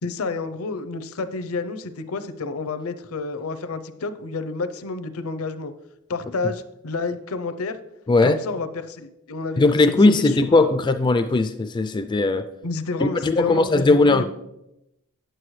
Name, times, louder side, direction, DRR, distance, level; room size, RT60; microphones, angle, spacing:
voice 1, 0.0-5.7 6.1-7.8 8.2-9.6 10.1-10.3 12.6-14.2, left 3 dB, 75° left, 11 dB, 0.6 m, -29 dB
voice 2, 8.1-8.4 9.6-12.5 13.0-14.2, left 2 dB, 20° left, 9 dB, 0.3 m, -18 dB
9.3 x 7.8 x 3.2 m, 0.87 s
head